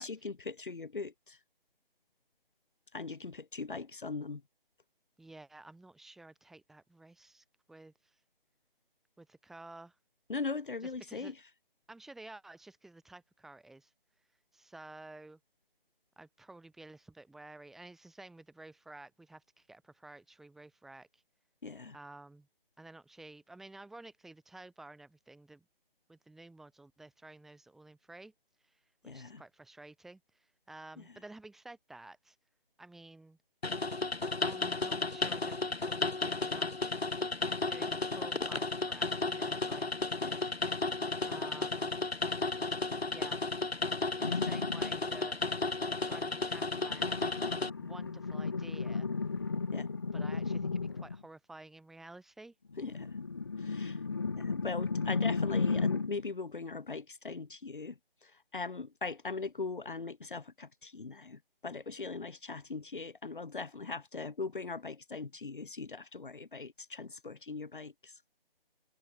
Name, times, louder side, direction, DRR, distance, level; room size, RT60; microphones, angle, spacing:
voice 1, 0.0-1.4 2.9-4.4 10.3-11.4 21.6-22.0 29.0-29.4 31.0-31.1 40.2-40.6 49.7-49.9 52.8-53.2 53.6-54.0 54.4-68.2, left 4 dB, 55° left, 2.1 m, -40 dB
voice 2, 5.2-8.2 9.2-10.0 11.1-11.3 11.9-13.9 14.5-15.4 16.2-21.2 21.9-22.5 22.8-25.7 26.1-28.3 28.6-32.4 32.8-33.4 34.4-37.0 37.7-40.4 41.2-42.0 43.1-43.4 44.2-45.4 46.0-49.1 50.1-52.5, right 2 dB, ahead, 3.6 m, -52 dB
sound 1, 33.6-47.7, left 3 dB, 85° left, 3.6 m, -33 dB
sound 2, 44.2-45.0 46.7-51.2 52.7-56.2, left 4 dB, 25° left, 1.2 m, -34 dB
figure-of-eight pair, 170°, 30 cm